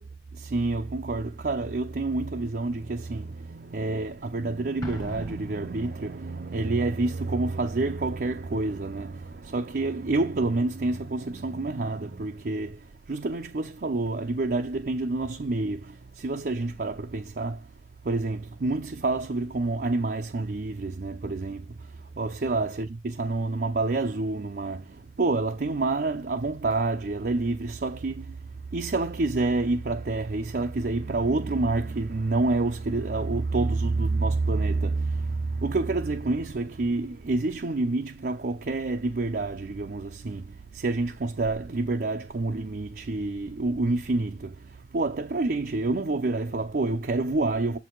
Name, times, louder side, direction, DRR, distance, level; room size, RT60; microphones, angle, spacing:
voice 1, 0.3-47.8, right 2 dB, 55° right, 0.5 m, -28 dB
Explosion, 4.8-6.5, equal, 20° left, 1.2 m, -39 dB
7.4 x 4.6 x 3.8 m
head